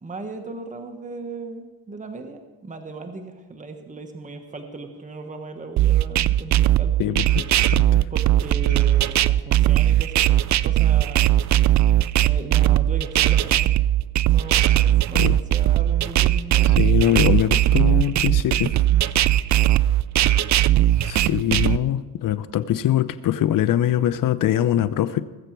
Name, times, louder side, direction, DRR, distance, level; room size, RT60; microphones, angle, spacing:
voice 1, 0.0-7.2 8.1-10.3 10.6-11.3 12.2-13.7 14.3-16.7, right 3 dB, 20° right, 5 dB, 1.4 m, -37 dB
sound 1, 5.8-21.8, right 13 dB, 50° right, 0.5 m, -18 dB
voice 2, 7.0-7.4 7.7-8.0 15.1-15.4 16.6-18.7 21.0-25.2, left 12 dB, 60° left, 14 dB, 0.7 m, -22 dB
20.0 x 7.9 x 4.6 m, 1.2 s
cardioid pair, 100°, 37 cm